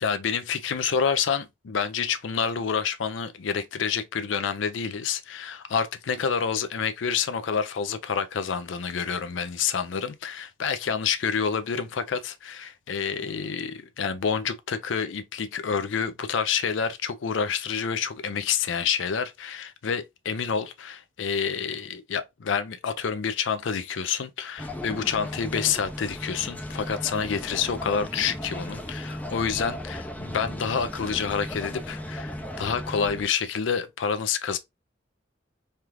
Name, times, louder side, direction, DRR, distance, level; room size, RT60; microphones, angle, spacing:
voice 1, 0.0-34.6, left 6 dB, 80° left, 0.5 m, -28 dB
sound 1, 24.6-33.2, left 1 dB, 10° left, 0.5 m, -36 dB
3.3 x 2.4 x 2.9 m
head